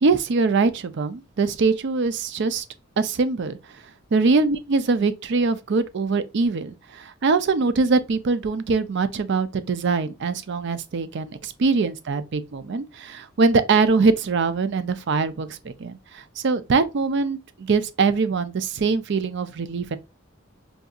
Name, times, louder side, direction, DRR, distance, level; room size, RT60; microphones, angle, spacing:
voice 1, 0.0-2.6 3.0-3.6 4.1-20.0, right 4 dB, 60° right, 0.5 m, -23 dB
4.7 x 2.7 x 2.3 m
head